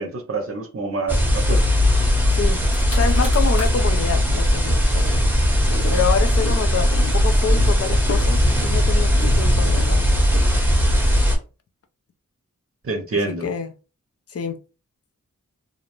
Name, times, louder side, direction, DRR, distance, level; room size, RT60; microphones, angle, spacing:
voice 1, 0.0-1.6 12.8-13.5, right 3 dB, 45° right, 0.7 m, -27 dB
sound 1, 1.1-11.4, equal, 5° right, 0.8 m, -18 dB
sound 2, 2.3-2.4 2.6-3.9 4.3-11.1, left 2 dB, 90° left, 1.0 m, -36 dB
voice 2, 2.3-2.7 2.9-5.2 5.9-10.1 13.4-13.7 14.3-14.6, left 6 dB, 50° left, 0.5 m, -27 dB
2.5 x 2.0 x 2.9 m
wide cardioid pair, 45°, 32 cm